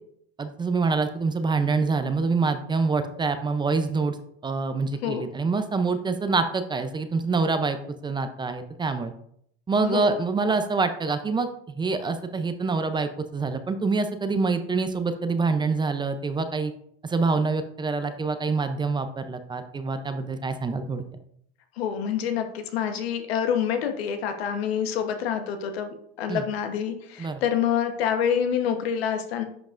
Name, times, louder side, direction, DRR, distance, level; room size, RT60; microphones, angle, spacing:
voice 1, 0.4-4.2 4.4-7.8 8.0-9.1 9.7-11.5 11.8-16.7 17.0-21.0 26.3-26.4 27.2-27.4, right 4 dB, 15° right, 9 dB, 0.5 m, -26 dB
voice 2, 21.8-29.4, left 8 dB, 85° left, 6 dB, 1.1 m, -27 dB
10.5 x 5.2 x 2.5 m, 0.70 s
supercardioid pair, 120°, 30 cm